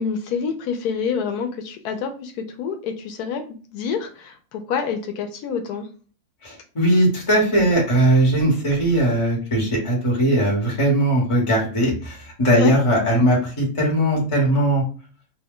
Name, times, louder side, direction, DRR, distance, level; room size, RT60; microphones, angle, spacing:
voice 1, 0.0-3.4 3.7-5.9 12.6-12.7, left 6 dB, 90° left, 6 dB, 1.1 m, -27 dB
voice 2, 6.4-14.8, right 1 dB, 25° left, -3 dB, 1.0 m, -19 dB
2.8 x 2.2 x 3.6 m, 0.38 s
omnidirectional pair, 1.6 m